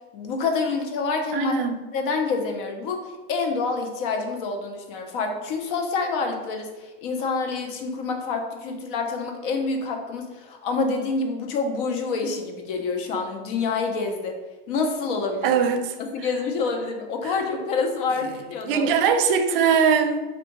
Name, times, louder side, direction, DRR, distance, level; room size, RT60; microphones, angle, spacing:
voice 1, 0.1-1.5 1.9-14.4 14.7-15.5 16.1-18.9, left 4 dB, 65° left, 0.8 m, -27 dB
voice 2, 1.3-1.8 15.4-16.3 17.2-17.4 18.2-20.2, right 6 dB, 70° right, 0.5 m, -22 dB
3.5 x 2.5 x 4.5 m
supercardioid pair, 155°, 29 cm